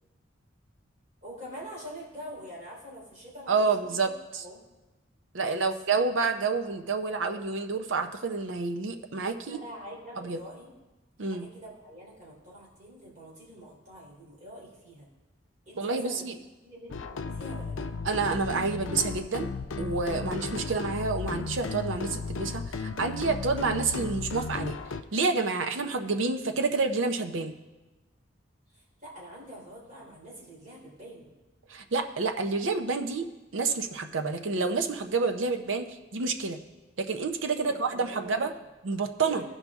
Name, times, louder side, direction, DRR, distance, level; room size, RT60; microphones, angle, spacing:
voice 1, 1.2-3.7 4.0-4.1 4.4-4.6 5.4-5.7 9.4-10.7 11.2-15.1 15.6-16.2 16.6-17.9 28.7-31.3 37.5-38.5 39.2-39.4, equal, 40° right, -5 dB, 3.3 m, -45 dB
voice 2, 3.5-4.4 5.3-9.6 10.2-10.4 11.2-11.5 15.8-16.3 18.0-19.5 19.8-24.7 25.1-27.5 31.7-33.3 33.5-36.6 37.0-38.5 38.8-39.4, right 4 dB, 85° right, 6 dB, 0.7 m, -29 dB
sound 1, 16.9-25.0, left 4 dB, 80° left, 0.5 m, -35 dB
15.5 x 5.5 x 3.6 m, 1.1 s
head